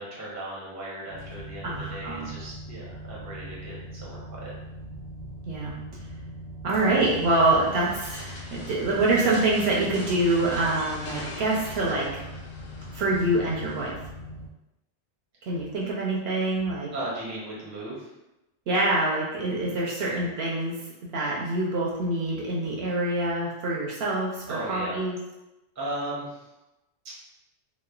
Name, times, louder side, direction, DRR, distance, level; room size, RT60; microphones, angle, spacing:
voice 1, 0.0-4.5 16.9-18.1 24.5-25.0 25.7-26.5, right 1 dB, 20° right, -6 dB, 0.5 m, -36 dB
sound 1, 1.1-14.5, right 1 dB, 50° left, 0.5 m, -41 dB
voice 2, 1.6-2.3 5.4-5.7 6.6-12.1 12.9-13.9 15.4-16.9 18.7-20.8 21.1-25.2, right 2 dB, 70° right, -4 dB, 0.8 m, -25 dB
sound 2, 6.7-13.9, left 2 dB, 75° left, 0.9 m, -43 dB
3.0 x 2.1 x 2.3 m, 0.95 s
omnidirectional pair, 1.2 m